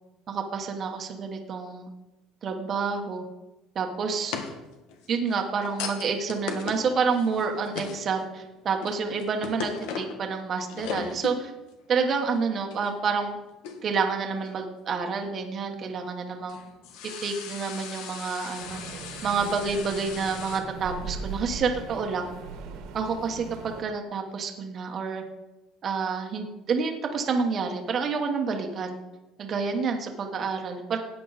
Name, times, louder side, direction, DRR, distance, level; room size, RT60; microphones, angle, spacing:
voice 1, 0.3-1.9 2.4-3.2 3.7-4.3 5.1-11.5 11.9-13.4 13.8-16.6 17.2-18.8 19.2-22.3 22.9-25.2 25.8-29.0 29.4-31.0, right 5 dB, 30° right, 3 dB, 1.2 m, -28 dB
sound 1, 4.2-8.2 8.6-10.3 10.6-11.4 11.7-11.8 12.7-12.9 13.6-14.0 14.4-14.6 16.2-20.6, left 6 dB, 80° left, 1.5 m, -37 dB
sound 2, 18.6-23.8, right 5 dB, 70° right, 1.6 m, -39 dB
13.5 x 9.2 x 4.1 m, 1.1 s
cardioid pair, 165°, 0 cm